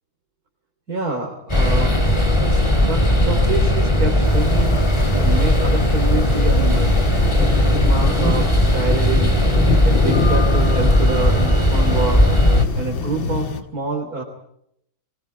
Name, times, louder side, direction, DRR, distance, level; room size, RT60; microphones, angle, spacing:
voice 1, 0.9-2.0 2.4-4.7 5.1-7.0 7.4-9.3 9.8-12.3 12.7-14.2, right 4 dB, 45° right, 1 dB, 3.8 m, -27 dB
sound 1, 1.5-12.6, left 1 dB, 15° left, 2.6 m, -17 dB
sound 2, 4.2-13.6, left 3 dB, 75° left, 2.4 m, -27 dB
23.0 x 21.0 x 8.7 m, 0.75 s
omnidirectional pair, 2.2 m